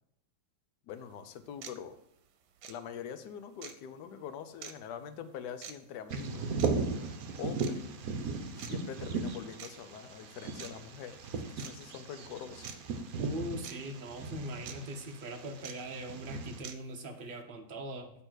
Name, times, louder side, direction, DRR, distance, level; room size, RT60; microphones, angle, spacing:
voice 1, 0.9-2.0 2.7-6.5 7.3-7.8 8.5-12.7, left 8 dB, 85° left, 10 dB, 1.2 m, -44 dB
sound 1, 0.9-1.0 1.6-1.8 2.6-2.8 3.6-3.8 4.6-4.7 5.6-5.8 6.6-6.7 7.6-7.8 8.6-8.7 9.6-9.7 10.6-10.7 11.6-11.7 12.6-12.8 13.6-13.7 14.6-14.8 15.6-15.7 16.6-16.8, right 8 dB, 85° right, 1.2 m, -44 dB
Bird vocalization bird call bird song, 6.1-16.6, right 4 dB, 65° right, 1.1 m, -37 dB
voice 2, 13.2-18.1, right 1 dB, 40° right, 4 dB, 0.8 m, -40 dB
8.2 x 3.3 x 6.1 m, 0.79 s
omnidirectional pair, 1.8 m